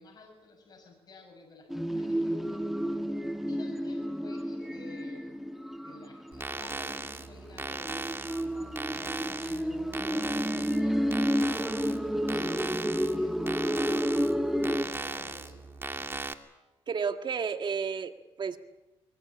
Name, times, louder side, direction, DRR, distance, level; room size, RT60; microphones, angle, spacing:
voice 1, 0.0-2.7 3.5-5.5 5.8-8.0 8.4-11.7 12.2-15.6, left 3 dB, 40° left, 1 dB, 6.8 m, -51 dB
sound 1, 1.7-6.9 7.7-14.8, equal, 5° right, 1.2 m, -30 dB
sound 2, 6.3-16.3, right 3 dB, 20° right, 1.9 m, -38 dB
voice 2, 16.9-18.6, right 6 dB, 45° right, 8 dB, 1.8 m, -32 dB
22.5 x 20.5 x 8.7 m, 1.1 s
cardioid pair, 85°, 11 cm